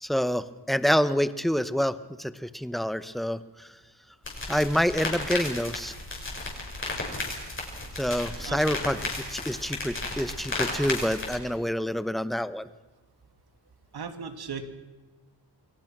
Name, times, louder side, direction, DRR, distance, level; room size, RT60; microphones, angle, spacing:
voice 1, 0.0-1.9 2.2-3.4 4.5-5.9 8.0-12.7, equal, ahead, 13 dB, 0.8 m, -27 dB
sound 1, 4.2-11.4, left 2 dB, 30° left, 5.9 m, -34 dB
voice 2, 13.9-14.6, right 6 dB, 65° right, 8 dB, 2.5 m, -36 dB
29.0 x 22.0 x 6.1 m, 1.2 s
wide cardioid pair, 150°, 42 cm